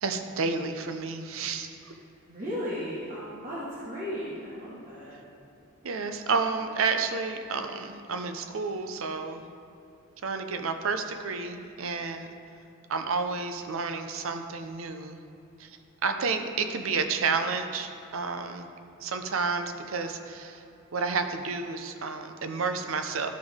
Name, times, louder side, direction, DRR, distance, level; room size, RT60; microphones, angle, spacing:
voice 1, 0.0-1.9 5.8-9.4 10.2-12.3 12.9-15.2 15.6-15.8 16.0-18.7 19.0-20.6 20.9-23.3, right 4 dB, 75° right, 7 dB, 0.6 m, -30 dB
voice 2, 2.3-5.1, equal, 40° right, -9 dB, 1.5 m, -36 dB
12.5 x 5.3 x 3.6 m, 2.7 s
head